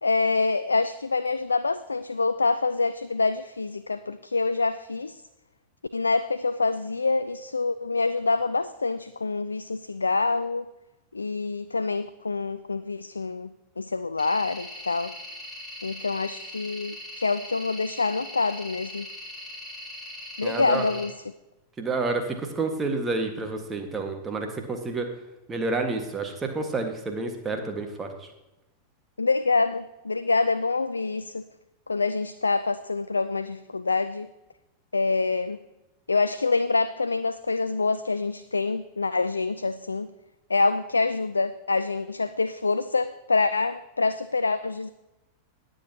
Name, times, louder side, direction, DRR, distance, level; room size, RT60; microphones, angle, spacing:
voice 1, 0.0-5.2 5.9-10.7 11.1-13.5 13.8-15.1 15.8-19.1 20.4-21.1 29.2-31.4 31.9-34.3 34.9-35.6 36.1-40.1 40.5-44.9, left 3 dB, 80° left, 13 dB, 0.3 m, -26 dB
sound 1, 14.2-21.0, left 1 dB, 10° left, 4.3 m, -40 dB
voice 2, 20.4-20.9 21.8-25.1 25.5-28.3, right 3 dB, 20° right, 4 dB, 1.7 m, -29 dB
19.5 x 7.8 x 2.9 m, 0.99 s
figure-of-eight pair, 90°, 0 cm